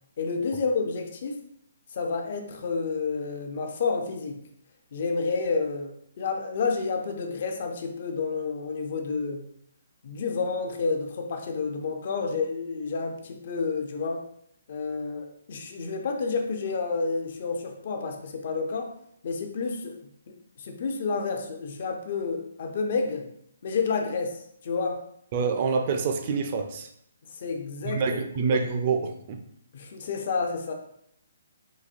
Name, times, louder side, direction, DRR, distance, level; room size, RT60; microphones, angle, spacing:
voice 1, 0.2-1.4 1.9-4.4 4.9-9.5 10.0-14.2 14.7-18.9 19.2-20.0 20.3-23.3 23.6-25.0 27.3-28.0 29.7-30.7, left 4 dB, 55° left, 4 dB, 0.6 m, -30 dB
voice 2, 25.3-26.9 27.8-29.4, right 5 dB, 40° right, 6 dB, 0.4 m, -26 dB
4.1 x 2.7 x 2.5 m, 0.70 s
hypercardioid pair, 145°, 0 cm